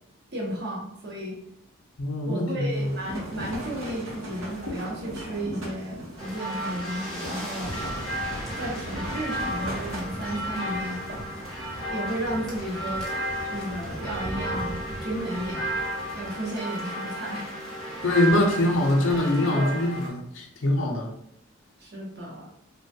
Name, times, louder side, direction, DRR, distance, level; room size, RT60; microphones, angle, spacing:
voice 1, 0.3-1.4 2.2-7.7 8.5-11.0 11.9-13.1 13.5-15.7 16.1-17.5 19.1-19.8 21.8-22.5, right 1 dB, 50° right, -2 dB, 0.8 m, -33 dB
voice 2, 2.0-2.9 18.0-21.1, left 1 dB, 75° left, 0 dB, 0.5 m, -23 dB
windy tent, 2.7-19.3, equal, 80° right, 0.9 m, -41 dB
sound 1, 6.2-20.1, right 1 dB, 5° left, 0.7 m, -33 dB
3.1 x 2.2 x 2.7 m, 0.72 s
head